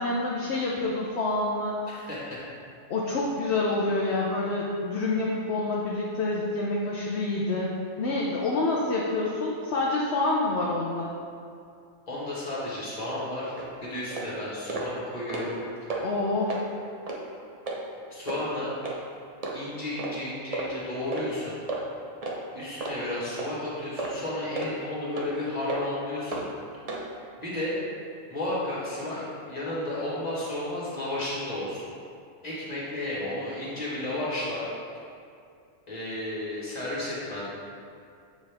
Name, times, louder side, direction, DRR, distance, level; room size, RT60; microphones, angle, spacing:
voice 1, 0.0-1.7 2.9-11.1 16.0-16.6, left 2 dB, 60° left, -4 dB, 1.0 m, -27 dB
voice 2, 1.9-2.4 12.1-15.9 18.1-18.8 19.5-21.6 22.5-26.5 27.4-27.8 28.3-31.9 32.4-34.7 35.9-37.4, left 1 dB, 30° left, -7 dB, 1.7 m, -33 dB
sound 1, 13.6-13.7 14.1-14.3 14.7-14.9 15.2-15.6 15.9-16.0 16.5-16.6 17.1-17.2 17.7-17.8 18.3-18.4 18.8-19.0 19.4-19.5 20.0-20.2 20.5-20.7 21.1-21.3 21.7-21.8 22.2-22.4 22.8-23.0 23.4-23.5 24.0-24.2 24.6-24.7 25.2-25.3 25.7-25.8 26.3-26.4 26.9-27.0, right 3 dB, 35° right, 0.7 m, -33 dB
7.8 x 4.7 x 3.4 m, 2.4 s
omnidirectional pair, 1.3 m